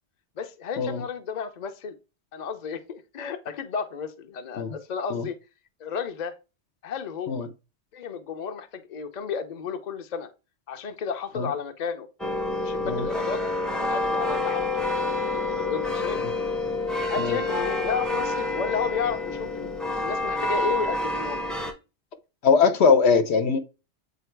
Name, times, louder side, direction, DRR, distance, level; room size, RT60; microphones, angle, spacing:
voice 1, 0.4-1.9 2.3-5.3 5.8-6.3 6.8-7.5 7.9-10.3 10.7-12.1 12.6-13.4 13.8-14.8 15.2-16.2 17.1-19.7 20.0-21.4, left 6 dB, 45° left, 0.7 m, -32 dB
sound 1, 12.2-21.7, left 2 dB, ahead, 0.7 m, -28 dB
voice 2, 22.4-23.6, left 5 dB, 70° left, 1.0 m, -21 dB
7.9 x 2.8 x 4.5 m
omnidirectional pair, 1.2 m